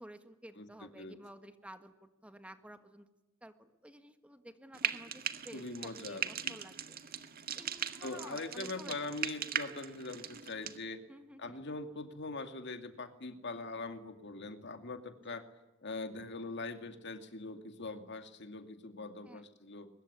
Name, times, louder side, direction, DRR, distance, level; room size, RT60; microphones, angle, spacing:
voice 1, 0.0-3.1 3.4-7.0 7.5-9.1 11.1-11.6 15.2-15.4 19.2-19.4, right 1 dB, 5° right, 8 dB, 1.7 m, -53 dB
Frying (food), 4.7-10.8, right 8 dB, 50° right, 1.7 m, -39 dB
voice 2, 5.5-6.6 8.0-11.0 11.4-15.5 15.8-19.9, left 3 dB, 60° left, 7 dB, 2.5 m, -42 dB
23.5 x 21.5 x 9.8 m, 1.0 s
head